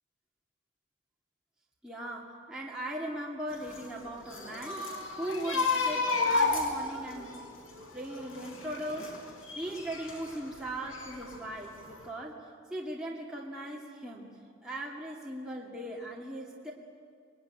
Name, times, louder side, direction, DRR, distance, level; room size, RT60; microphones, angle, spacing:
voice 1, 1.8-7.5 7.9-14.3 14.6-16.7, right 1 dB, 5° right, -4 dB, 2.3 m, -39 dB
sound 1, 3.5-10.4 10.8-11.7 11.9-12.1, left 3 dB, 75° left, 5.4 m, -32 dB
26.5 x 20.5 x 10.0 m, 2.2 s
head